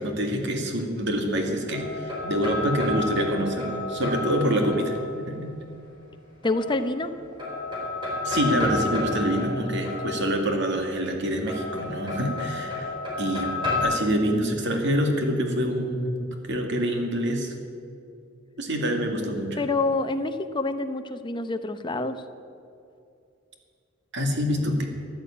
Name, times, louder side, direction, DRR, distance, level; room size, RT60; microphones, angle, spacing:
voice 1, 0.0-5.5 8.2-12.9 13.2-13.5 13.8-17.6 18.6-19.6 24.1-24.8, equal, 55° right, 3 dB, 2.2 m, -26 dB
sound 1, 1.3-5.3 6.4-7.1 7.4-10.6 11.5-13.8, left 3 dB, 25° right, 4.1 m, -31 dB
voice 2, 6.4-7.1 19.6-22.2, left 2 dB, 20° left, 8 dB, 0.8 m, -27 dB
15.0 x 10.5 x 8.7 m, 2.5 s
head